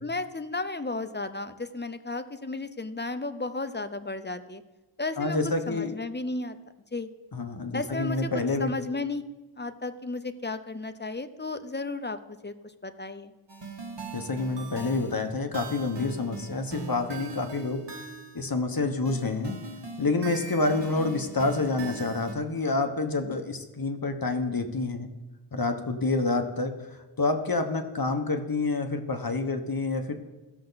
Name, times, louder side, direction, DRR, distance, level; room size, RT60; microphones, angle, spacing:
voice 1, 0.0-4.6 5.0-5.4 5.7-6.6 6.9-7.1 7.7-8.3 8.6-9.2 9.6-12.5 12.8-13.3, left 3 dB, 20° left, 10 dB, 0.6 m, -33 dB
voice 2, 5.2-5.9 7.3-8.7 14.1-17.8 18.3-19.6 20.0-25.1 25.5-26.7 27.2-30.1, left 3 dB, 45° left, 6 dB, 1.1 m, -28 dB
sound 1, 13.5-18.5 19.1-22.3, right 4 dB, 55° right, 1.3 m, -40 dB
16.0 x 6.7 x 4.0 m, 1.1 s
wide cardioid pair, 65°, 49 cm